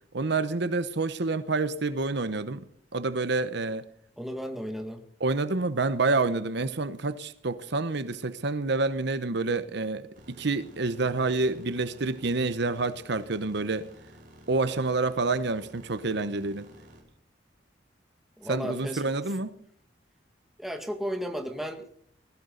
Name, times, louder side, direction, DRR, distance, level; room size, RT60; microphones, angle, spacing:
voice 1, 0.1-2.6 2.9-3.8 5.2-13.9 14.5-16.7 18.5-19.6, right 3 dB, 65° right, 13 dB, 0.9 m, -28 dB
voice 2, 4.2-5.0 18.4-19.0 20.6-21.8, equal, ahead, 5 dB, 1.9 m, -34 dB
sound 1, 10.1-17.0, right 1 dB, 50° right, 4.8 m, -52 dB
19.5 x 15.5 x 3.9 m, 0.64 s
head